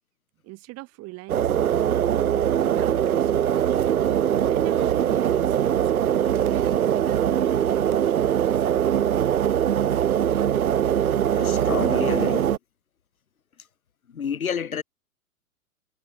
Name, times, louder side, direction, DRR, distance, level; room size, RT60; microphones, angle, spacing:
voice 1, 0.4-1.9 2.6-3.9 4.5-8.7, right 22 dB, 35° right, 7.8 m, -41 dB
sound 1, 1.3-12.6, right 10 dB, 70° right, 0.8 m, -22 dB
voice 2, 11.3-12.5 14.1-14.8, left 7 dB, 65° left, 4.1 m, -29 dB
figure-of-eight pair, 105°, 44 cm